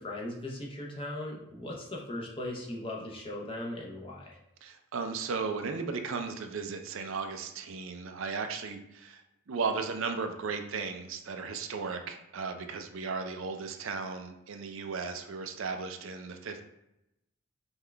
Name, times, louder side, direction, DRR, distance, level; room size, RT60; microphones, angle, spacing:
voice 1, 0.0-4.4, left 1 dB, 25° left, -2 dB, 0.7 m, -38 dB
voice 2, 4.6-9.2 9.5-16.6, right 4 dB, 70° right, 6 dB, 0.5 m, -35 dB
5.5 x 2.4 x 3.3 m, 0.87 s
head